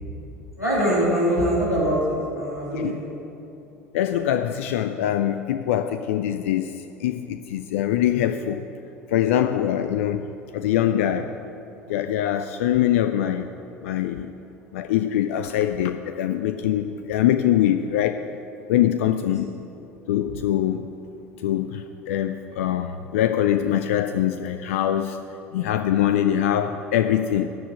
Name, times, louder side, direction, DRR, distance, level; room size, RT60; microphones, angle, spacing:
voice 1, 0.6-3.2 19.2-19.3, equal, 90° left, -7 dB, 2.6 m, -23 dB
voice 2, 3.9-8.6 9.1-10.3 10.5-11.3 11.9-13.5 13.8-14.3 14.7-18.2 18.7-19.5 20.1-20.9 21.4-25.2 25.5-27.5, left 11 dB, 65° left, 9 dB, 0.4 m, -23 dB
13.0 x 5.1 x 8.2 m, 2.8 s
figure-of-eight pair, 65°, 8 cm